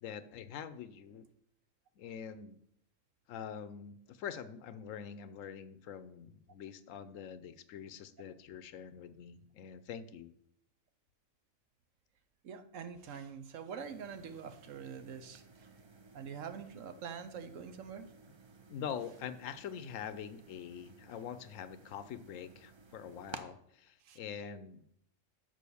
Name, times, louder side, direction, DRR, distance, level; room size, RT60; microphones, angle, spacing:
voice 1, 0.0-1.2 2.0-2.6 3.3-10.3 18.7-24.9, left 8 dB, 85° left, 13 dB, 1.0 m, -45 dB
voice 2, 12.4-15.7 16.1-18.1 24.0-24.2, right 6 dB, 85° right, 10 dB, 1.2 m, -45 dB
sound 1, 13.8-23.4, right 4 dB, 40° right, 0.4 m, -55 dB
6.3 x 5.5 x 6.9 m, 0.72 s
omnidirectional pair, 1.3 m